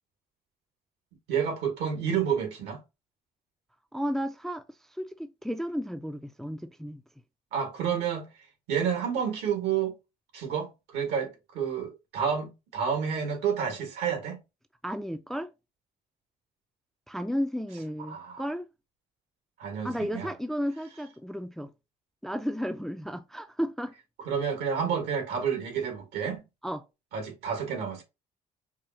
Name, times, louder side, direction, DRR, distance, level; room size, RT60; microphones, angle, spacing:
voice 1, 1.3-2.8 7.5-8.3 8.7-9.9 10.3-14.4 18.1-18.4 19.6-20.3 24.2-26.4 27.1-28.0, right 7 dB, 85° right, 1.6 m, -30 dB
voice 2, 3.9-4.6 5.0-7.0 14.8-15.5 17.1-18.7 19.8-21.7 22.2-23.9 26.6-26.8, equal, ahead, 0.3 m, -33 dB
4.8 x 2.4 x 2.8 m
cardioid pair, 110°, 17 cm